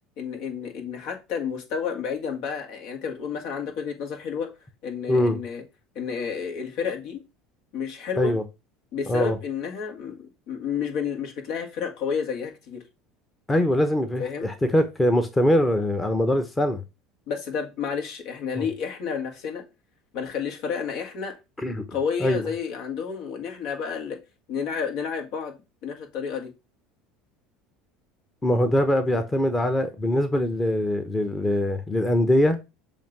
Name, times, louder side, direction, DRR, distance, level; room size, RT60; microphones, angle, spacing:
voice 1, 0.2-4.5 4.8-5.6 6.0-7.2 7.7-8.4 8.9-12.8 14.2-14.5 17.3-19.6 20.1-21.3 21.9-24.2 24.5-26.5, left 6 dB, 65° left, 1.9 m, -31 dB
voice 2, 5.1-5.4 8.2-8.4 9.1-9.4 13.5-16.8 18.6-18.7 21.6-21.8 22.2-22.5 28.4-32.6, left 1 dB, 15° left, 1.0 m, -22 dB
7.1 x 2.9 x 5.9 m
supercardioid pair, 90°, 0 cm